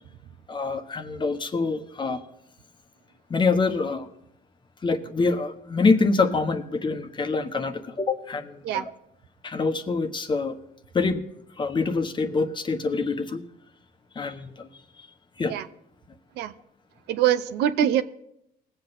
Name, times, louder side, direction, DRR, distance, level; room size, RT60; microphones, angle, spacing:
voice 1, 0.5-2.2 3.3-4.1 4.8-8.9 9.4-10.6 10.9-11.2 11.6-13.4 14.1-14.7 15.4-15.5, left 4 dB, 30° left, 8 dB, 1.1 m, -25 dB
voice 2, 17.1-18.0, right 11 dB, 80° right, 11 dB, 0.7 m, -23 dB
20.0 x 7.9 x 4.0 m, 0.77 s
cardioid pair, 110°, 17 cm